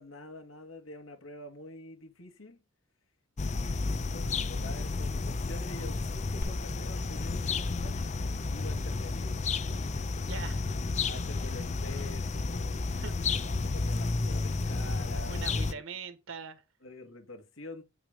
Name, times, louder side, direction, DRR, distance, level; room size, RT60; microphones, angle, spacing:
voice 1, 0.0-2.6 3.4-9.4 11.0-15.8 16.8-17.8, left 1 dB, 75° left, 2.3 m, -47 dB
sound 1, 3.4-15.7, left 3 dB, 35° left, 0.6 m, -32 dB
Glass, 6.4-14.4, equal, 55° left, 2.7 m, -49 dB
voice 2, 10.2-10.7 11.1-11.6 11.9-12.0 13.0-13.5 15.3-16.6, right 5 dB, 65° right, 1.5 m, -43 dB
9.0 x 5.8 x 5.2 m
head